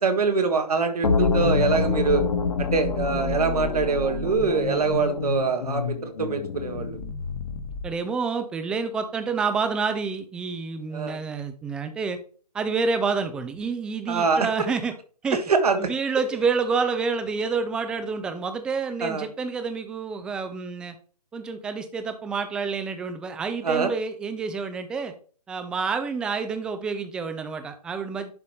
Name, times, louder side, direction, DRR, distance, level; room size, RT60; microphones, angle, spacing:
voice 1, 0.0-2.2 2.6-7.0 10.9-11.2 14.1-14.5 15.5-15.9 19.0-19.2 23.6-23.9, right 4 dB, 70° right, 6 dB, 1.5 m, -24 dB
sound 1, 1.0-7.9, left 4 dB, 60° left, 1.7 m, -27 dB
voice 2, 7.8-12.2 12.5-14.9 15.2-15.4 15.8-21.0 21.3-25.1 25.5-28.3, right 5 dB, 5° right, 9 dB, 0.3 m, -28 dB
11.0 x 4.1 x 3.2 m, 0.41 s
figure-of-eight pair, 135°, 21 cm